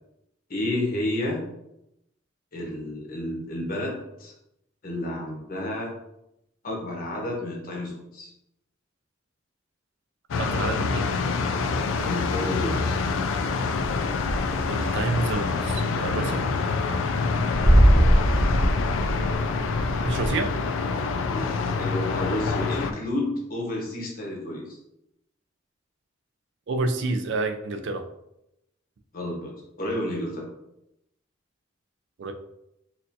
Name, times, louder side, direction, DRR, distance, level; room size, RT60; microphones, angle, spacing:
voice 1, 0.5-1.5 2.5-4.3 4.8-5.9 6.6-8.3 12.0-13.0 16.2-16.4 17.9-18.1 21.3-24.8 29.1-30.5, left 1 dB, 50° left, -1 dB, 1.0 m, -31 dB
sound 1, 10.3-22.9, left 4 dB, 75° left, 0.3 m, -26 dB
voice 2, 10.4-11.1 14.7-16.4 20.0-20.5 26.7-28.0 32.2-32.3, right 3 dB, 65° right, 6 dB, 0.4 m, -28 dB
sound 2, 13.8-14.8 15.1-20.3, equal, 10° right, 0.9 m, -21 dB
4.2 x 2.6 x 2.6 m, 0.83 s
head